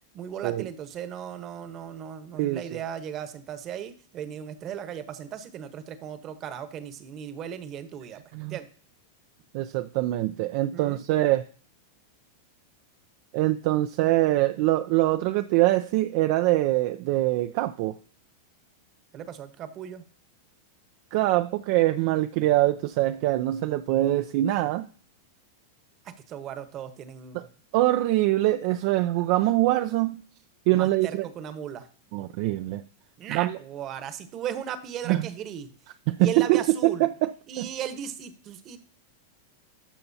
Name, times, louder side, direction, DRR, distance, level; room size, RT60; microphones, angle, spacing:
voice 1, 0.1-8.7 10.7-11.0 19.1-20.0 26.0-27.4 30.7-31.9 33.2-35.7 36.2-37.1 37.5-38.8, right 9 dB, 40° right, 11 dB, 1.0 m, -37 dB
voice 2, 2.4-2.8 8.3-8.6 9.5-11.4 13.3-18.0 21.1-24.9 27.3-27.4 27.7-30.2 30.7-31.3 32.1-32.8 33.3-33.6 35.1-35.2 36.1-37.7, right 16 dB, 55° right, 9 dB, 0.4 m, -24 dB
12.5 x 5.6 x 2.7 m, 0.42 s
hypercardioid pair, 115°, 0 cm